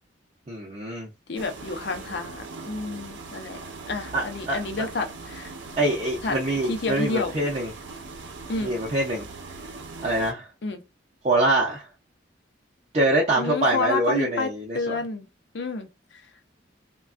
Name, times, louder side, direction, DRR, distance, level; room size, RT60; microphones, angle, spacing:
voice 1, 0.5-1.1 4.1-4.8 5.8-7.7 8.6-9.2 10.0-10.5 11.2-11.9 12.9-15.0, right 1 dB, 35° right, 0.5 m, -24 dB
voice 2, 1.3-3.6 3.9-5.5 6.2-6.4 6.7-7.3 8.5-8.7 10.6-10.8 13.3-15.3 15.5-16.2, left 3 dB, 60° left, 0.5 m, -30 dB
sound 1, 1.4-10.3, right 3 dB, 70° right, 0.7 m, -40 dB
3.2 x 2.2 x 2.4 m
head